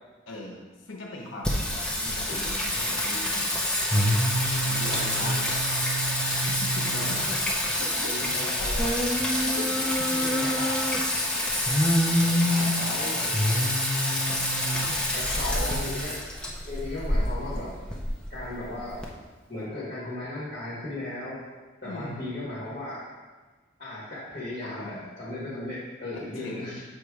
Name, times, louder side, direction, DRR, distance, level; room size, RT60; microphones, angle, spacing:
voice 1, 0.3-3.5 4.6-5.4 6.1-9.1 9.4-11.7 12.0-13.6 14.4-16.0 21.8-22.2 24.6-25.1 26.1-26.8, left 1 dB, 70° left, 0 dB, 0.9 m, -40 dB
Singing, 1.4-19.0, left 1 dB, 5° left, 0.5 m, -26 dB
voice 2, 4.9-5.6 6.9-7.2 8.1-8.9 10.4-10.5 12.6-13.4 15.1-16.2 16.7-17.8 18.3-19.0 19.5-21.4 21.8-23.1 23.8-26.8, left 2 dB, 40° left, -9 dB, 1.5 m, -36 dB
6.9 x 3.0 x 4.7 m, 1.3 s
head